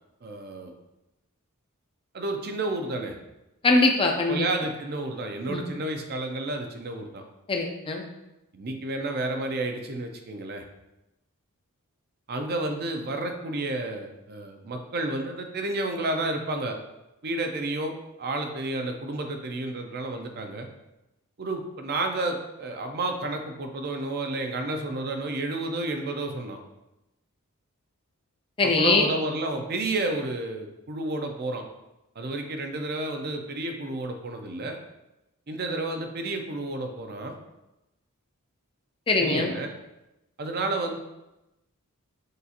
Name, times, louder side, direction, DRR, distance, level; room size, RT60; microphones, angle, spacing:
voice 1, 0.2-0.7 2.1-3.1 4.3-7.2 8.5-10.6 12.3-16.8 17.2-20.7 21.4-26.6 28.6-31.6 32.2-34.8 35.5-37.4 39.2-39.7 40.4-41.0, right 2 dB, 45° right, 4 dB, 0.5 m, -31 dB
voice 2, 3.6-4.4 5.5-5.6 7.5-8.1 28.6-29.1 39.1-39.5, left 3 dB, 25° left, 2 dB, 0.4 m, -22 dB
6.5 x 2.4 x 2.8 m, 0.94 s
head